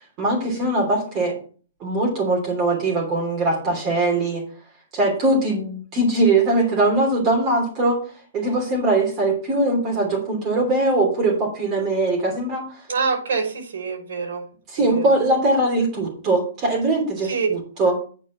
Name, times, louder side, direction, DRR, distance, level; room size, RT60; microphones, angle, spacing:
voice 1, 0.2-1.4 1.8-4.4 4.9-8.0 8.3-12.8 14.7-17.9, right 2 dB, 25° right, -1 dB, 3.2 m, -21 dB
voice 2, 12.9-14.4 14.8-15.1 17.2-17.5 17.8-17.9, right 5 dB, 70° right, 2 dB, 5.4 m, -26 dB
9.0 x 4.9 x 7.3 m, 0.40 s
hypercardioid pair, 160°, 0 cm